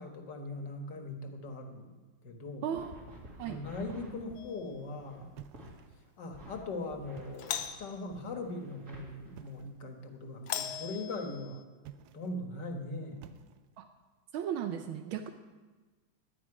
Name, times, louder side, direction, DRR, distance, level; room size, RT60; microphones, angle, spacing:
voice 1, 0.0-2.0 2.2-2.7 3.5-5.3 6.2-11.6 12.1-13.3, left 2 dB, 60° left, 4 dB, 2.1 m, -40 dB
voice 2, 2.6-2.9 3.4-3.6 13.8-13.9 14.3-15.3, right 9 dB, 85° right, 6 dB, 1.5 m, -35 dB
sound 1, 2.7-5.7 6.3-9.7, equal, 50° right, 3.1 m, -52 dB
Doorbell, 4.3-4.8 7.3-8.0 10.5-11.6, left 9 dB, 80° left, 1.6 m, -39 dB
sound 2, 5.4-6.2 7.0-7.7 9.3-9.8 11.8-12.4 13.2-13.9, right 11 dB, 70° right, 1.0 m, -52 dB
18.0 x 11.0 x 4.9 m, 1.3 s
omnidirectional pair, 2.2 m